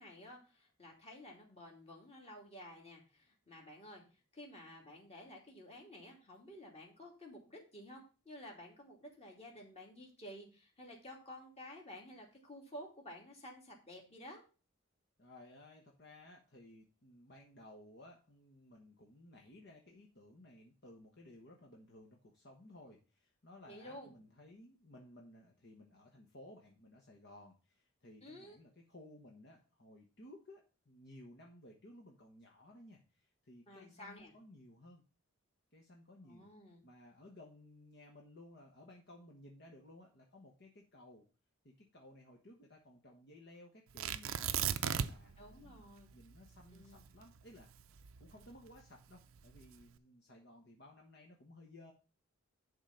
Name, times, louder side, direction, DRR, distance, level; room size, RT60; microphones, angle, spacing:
voice 1, 0.0-4.0 4.3-14.4 23.7-24.1 28.2-28.6 33.7-34.3 36.3-36.8 45.4-46.1 46.7-47.0, left 1 dB, 30° left, -1 dB, 2.7 m, -52 dB
voice 2, 15.2-35.0 35.7-36.5 36.8-41.2 41.6-45.8 46.1-47.7 48.2-51.9, left 1 dB, 50° left, 0 dB, 1.3 m, -58 dB
Tearing, 44.0-45.4 45.7-45.8 46.3-48.7 49.4-49.8, right 8 dB, 80° right, 0.6 m, -36 dB
11.0 x 3.9 x 5.7 m, 0.34 s
head